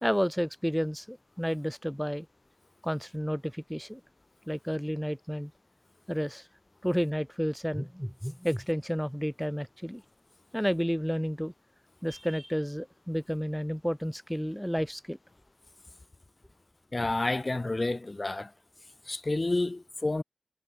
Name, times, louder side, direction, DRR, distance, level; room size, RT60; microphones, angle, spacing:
voice 1, 0.0-2.3 2.8-4.0 4.5-5.5 6.1-6.5 6.8-10.0 10.5-11.5 12.0-15.2, equal, ahead, 2.3 m, -31 dB
voice 2, 16.9-18.5 19.1-20.2, left 2 dB, 45° left, 4.0 m, -29 dB
wide cardioid pair, 70°, 0 cm